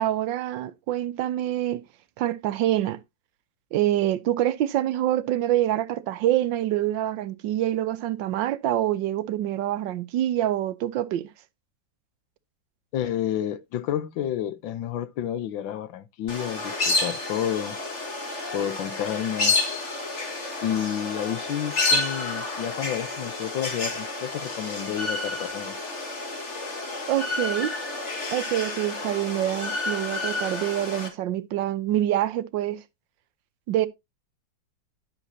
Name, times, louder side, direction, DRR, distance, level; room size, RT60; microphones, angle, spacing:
voice 1, 0.0-1.8 2.2-3.0 3.7-11.3 27.1-27.7 28.3-32.8 33.7-33.9, right 13 dB, 75° right, 1.4 m, -26 dB
voice 2, 12.9-17.8 18.5-19.6 20.6-25.8, left 10 dB, 80° left, 1.5 m, -30 dB
sound 1, 16.3-31.1, left 3 dB, 35° left, 2.3 m, -30 dB
11.0 x 7.3 x 2.8 m
omnidirectional pair, 2.1 m